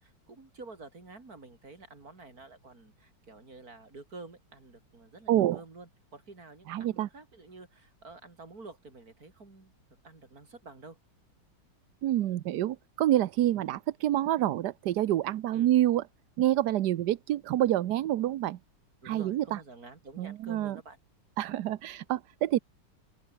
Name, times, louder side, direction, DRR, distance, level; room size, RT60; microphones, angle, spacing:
voice 1, 0.0-9.7 10.0-11.0 15.5-15.7 19.0-21.0, right 3 dB, 50° right, 4.6 m, -49 dB
voice 2, 5.3-5.6 6.7-7.1 12.0-16.0 16.4-18.6 19.0-19.6 20.2-20.8 21.4-22.6, right 13 dB, 65° right, 1.3 m, -27 dB
open air
omnidirectional pair, 2.0 m